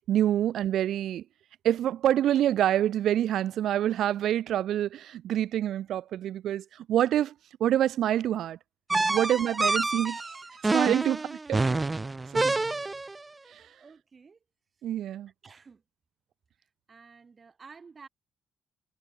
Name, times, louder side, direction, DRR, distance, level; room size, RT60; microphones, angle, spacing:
voice 1, 0.1-1.2 1.6-7.3 7.6-8.6 9.1-11.6 12.3-12.5 13.5-13.7 14.8-15.3, right 11 dB, 75° right, 1.1 m, -27 dB
sound 1, 8.9-13.2, right 3 dB, 20° right, 1.1 m, -27 dB
voice 2, 13.8-14.4 15.4-15.8 16.9-18.1, right 5 dB, 35° right, 6.9 m, -51 dB
cardioid pair, 90°, 0 cm